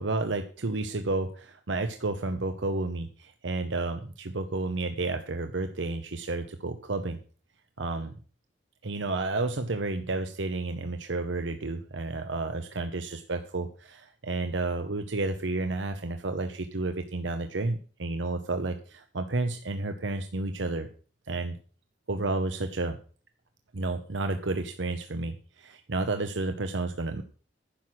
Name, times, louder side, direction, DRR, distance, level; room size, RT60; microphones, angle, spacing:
voice 1, 0.0-7.2 7.8-8.1 8.8-20.9 21.3-21.6 22.1-23.0 23.7-27.2, right 2 dB, 80° right, 7 dB, 0.9 m, -31 dB
10.5 x 6.3 x 7.6 m, 0.40 s
head